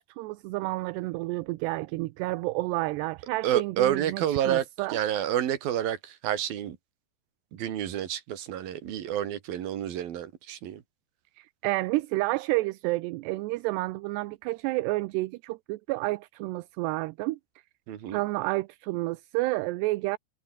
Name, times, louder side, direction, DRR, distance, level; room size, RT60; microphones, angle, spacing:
voice 1, 0.0-5.0 11.4-17.4 18.1-20.2, right 21 dB, 80° right, 2.7 m, -30 dB
voice 2, 3.4-4.7 4.9-6.8 7.5-10.8 17.9-18.2, right 11 dB, 60° right, 3.6 m, -29 dB
omnidirectional pair, 5.1 m